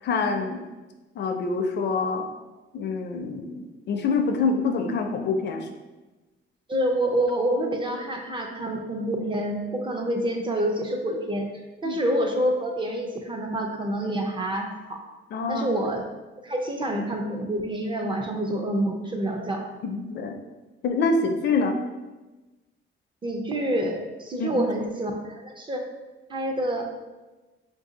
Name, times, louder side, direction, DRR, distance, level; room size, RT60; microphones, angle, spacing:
voice 1, 0.0-0.6 1.2-2.3 2.7-5.7 11.8-12.0 15.3-15.7 19.8-20.4 20.8-21.7 24.4-24.6, left 4 dB, 60° left, 5 dB, 0.4 m, -26 dB
voice 2, 6.7-11.5 11.8-15.0 15.5-16.0 16.4-19.7 23.2-25.8 26.3-26.8, right 1 dB, 25° right, 2 dB, 0.4 m, -27 dB
3.6 x 2.6 x 3.7 m, 1.1 s
cardioid pair, 160°, 20 cm